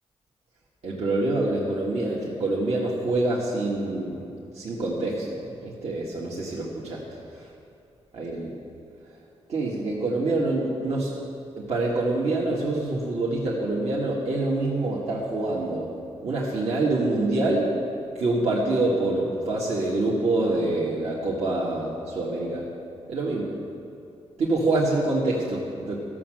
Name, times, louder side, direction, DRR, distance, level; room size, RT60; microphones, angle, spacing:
voice 1, 0.8-4.3 4.5-7.0 8.1-8.5 9.5-11.2 11.6-15.9 16.2-17.7 18.2-22.7 23.1-23.5 24.4-26.0, right 2 dB, 65° right, -6 dB, 1.7 m, -26 dB
14.0 x 6.4 x 7.7 m, 2.5 s
wide cardioid pair, 105°, 12 cm